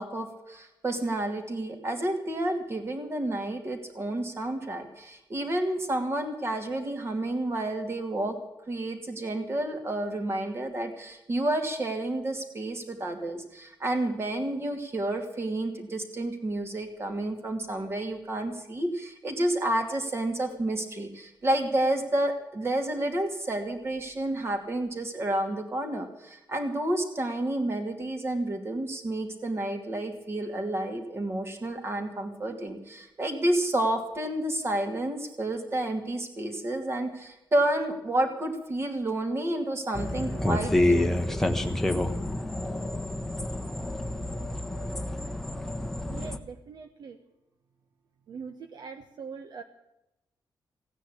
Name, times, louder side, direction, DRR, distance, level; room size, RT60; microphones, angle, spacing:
voice 1, 0.0-8.4 8.7-41.4, right 1 dB, 30° right, 5 dB, 2.7 m, -30 dB
sound 1, 39.9-46.4, left 1 dB, 5° left, 1.1 m, -28 dB
voice 2, 46.1-47.2 48.3-49.6, right 5 dB, 60° right, 6 dB, 1.2 m, -42 dB
16.5 x 9.8 x 8.6 m, 0.90 s
wide cardioid pair, 155°, 8 cm